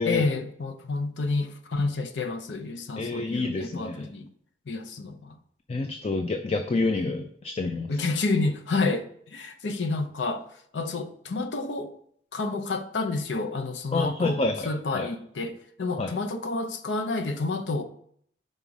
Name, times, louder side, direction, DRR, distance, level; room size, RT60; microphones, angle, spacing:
voice 1, 0.0-4.3 4.7-5.4 7.9-10.4 10.7-11.9 12.3-17.8, left 3 dB, 85° left, 0.7 m, -29 dB
voice 2, 3.0-4.1 5.7-7.9 13.9-15.1 16.0-16.1, left 3 dB, 35° left, 0.4 m, -28 dB
5.5 x 4.0 x 4.7 m
head